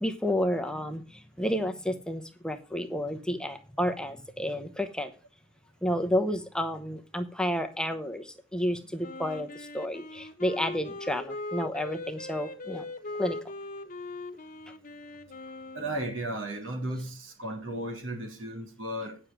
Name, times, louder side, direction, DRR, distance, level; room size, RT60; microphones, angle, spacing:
voice 1, 0.0-5.1 5.8-12.8 13.2-13.4, equal, 5° left, 0.9 m, -31 dB
Wind instrument woodwind instrument, 9.0-16.1, left 2 dB, 40° left, 1.3 m, -40 dB
voice 2, 15.7-19.2, right 1 dB, 75° right, 3.2 m, -35 dB
9.9 x 6.5 x 5.9 m
head